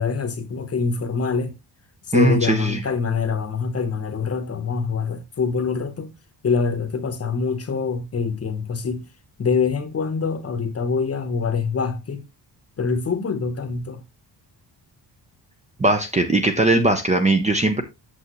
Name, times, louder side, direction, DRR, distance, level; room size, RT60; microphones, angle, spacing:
voice 1, 0.0-1.5 2.1-6.1 6.4-9.1 9.4-12.2 12.8-14.0, left 5 dB, 35° left, 1.0 m, -25 dB
voice 2, 2.1-2.8 15.8-17.8, right 2 dB, 15° right, 0.7 m, -19 dB
8.4 x 6.9 x 3.1 m
wide cardioid pair, 175°, 43 cm